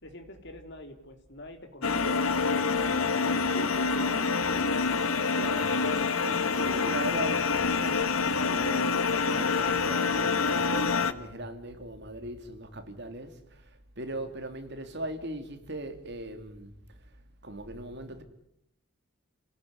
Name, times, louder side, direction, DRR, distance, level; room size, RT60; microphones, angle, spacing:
voice 1, 0.0-2.3, left 1 dB, 55° left, 3.7 m, -47 dB
sound 1, 1.8-11.1, left 4 dB, 80° left, 1.5 m, -26 dB
voice 2, 5.3-5.8 6.1-17.2 17.4-18.2, right 1 dB, 55° right, 3.1 m, -39 dB
29.5 x 17.5 x 9.8 m
head